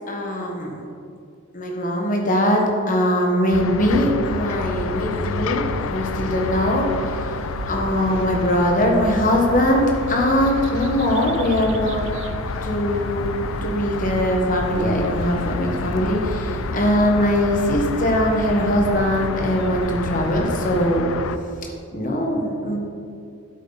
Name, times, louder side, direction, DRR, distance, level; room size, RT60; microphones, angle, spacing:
voice 1, 0.1-0.8 1.5-7.4 7.6-12.0 12.6-13.3 13.6-21.1 21.6-22.8, equal, 40° left, 1 dB, 1.3 m, -21 dB
sound 1, 3.5-21.4, left 5 dB, 75° left, 0.4 m, -29 dB
sound 2, 4.7-21.0, right 3 dB, 60° right, 0.4 m, -34 dB
9.1 x 8.1 x 4.0 m, 2.4 s
head